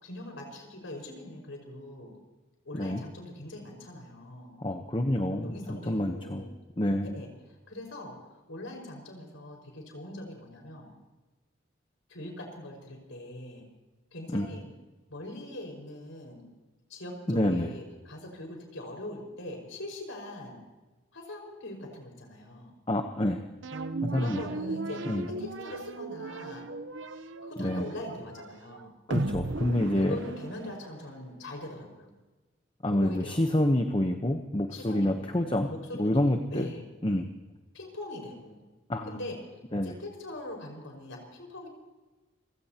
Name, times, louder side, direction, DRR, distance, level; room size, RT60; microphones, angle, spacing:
voice 1, 0.0-2.1 2.6-4.6 5.4-6.5 7.1-10.9 12.1-13.7 14.1-14.7 15.1-16.5 16.9-20.6 21.1-22.7 24.1-26.7 27.4-28.9 29.9-32.1 32.9-33.4 34.7-36.8 37.7-38.6 39.1-39.4 39.8-41.7, left 1 dB, 85° left, 1 dB, 5.3 m, -42 dB
voice 2, 4.6-6.4 6.8-7.2 14.3-14.5 17.3-17.7 22.9-23.5 24.0-24.4 25.1-25.3 27.6-27.8 29.1-30.2 32.8-35.7 36.0-36.7 37.0-37.3 38.9-39.2 39.7-39.9, left 1 dB, 25° left, 5 dB, 0.9 m, -27 dB
sound 1, 23.6-31.1, right 2 dB, 75° right, 0.9 m, -36 dB
28.5 x 17.0 x 2.9 m, 1.2 s
head